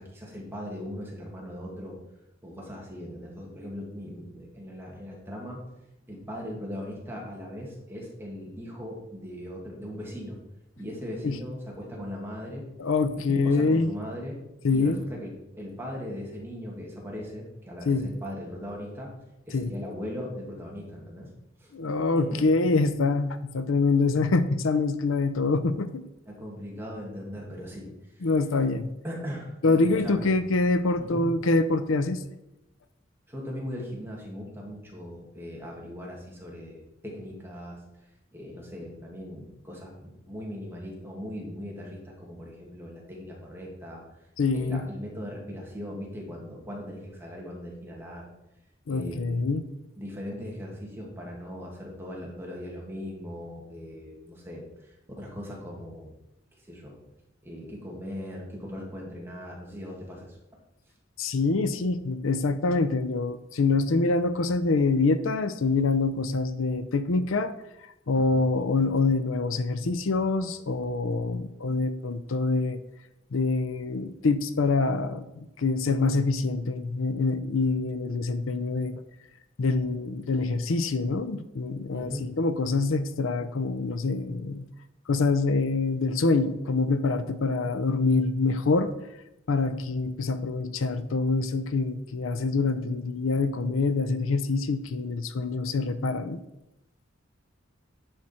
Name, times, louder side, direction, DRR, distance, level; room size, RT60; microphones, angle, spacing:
voice 1, 0.0-2.0 2.4-5.6 6.1-10.4 10.8-12.7 13.2-14.4 14.7-19.1 19.4-21.3 21.6-21.7 22.2-22.4 26.3-27.9 28.2-28.3 29.0-30.3 31.0-31.3 33.3-37.8 38.3-44.0 44.5-48.3 48.9-49.4 50.0-56.1 56.7-57.0 57.4-60.4 68.2-68.5 81.9-82.3, equal, 10° right, -2 dB, 2.0 m, -39 dB
voice 2, 12.8-13.9 14.6-15.0 17.9-18.1 19.5-19.7 21.7-26.0 28.2-28.9 29.6-32.2 44.4-44.8 48.9-49.6 61.2-67.5 68.1-72.8 73.3-79.0 79.6-84.6 85.1-88.9 89.5-96.4, left 3 dB, 85° left, 11 dB, 0.6 m, -25 dB
10.5 x 4.9 x 4.3 m, 0.89 s
head